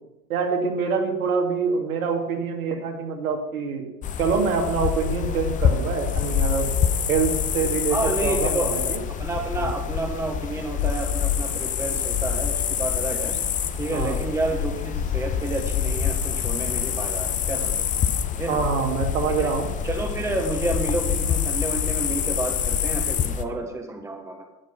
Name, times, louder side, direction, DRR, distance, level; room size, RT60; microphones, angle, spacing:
voice 1, 0.3-3.9 4.2-6.7 7.1-9.0 9.6-9.7 13.9-14.2 18.5-19.7, right 5 dB, 60° right, 2 dB, 2.5 m, -25 dB
sound 1, 4.0-23.4, left 8 dB, 15° left, 0.6 m, -26 dB
voice 2, 7.9-13.3 13.8-17.7 18.3-18.6 19.4-19.5 19.8-24.4, right 2 dB, 5° right, 3 dB, 1.2 m, -30 dB
11.5 x 9.6 x 5.7 m, 0.98 s
figure-of-eight pair, 90°, 47 cm